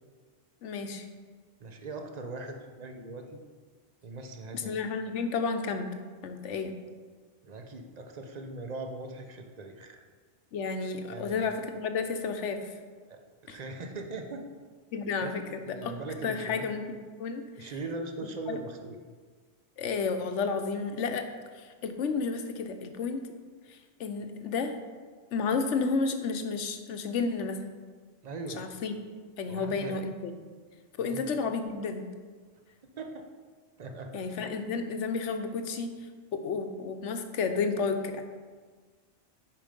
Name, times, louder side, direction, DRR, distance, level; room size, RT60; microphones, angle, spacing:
voice 1, 0.6-1.1 4.5-5.9 6.2-6.7 10.5-12.7 13.5-13.6 14.9-15.9 16.2-16.8 17.2-17.7 18.5-18.6 19.8-21.3 21.5-23.2 23.7-24.8 25.3-27.6 28.6-28.9 29.4-30.3 31.0-32.0 34.1-35.9 36.3-38.2, left 4 dB, 80° left, 7 dB, 1.1 m, -31 dB
voice 2, 1.6-3.4 4.0-4.8 7.4-10.0 11.1-11.4 13.1-14.4 15.2-16.7 17.6-19.0 28.2-28.6 29.5-30.0 31.0-31.2 33.0-33.3 33.8-34.2, right 2 dB, 40° right, 4 dB, 0.8 m, -40 dB
8.5 x 5.2 x 5.2 m, 1.5 s
omnidirectional pair, 1.2 m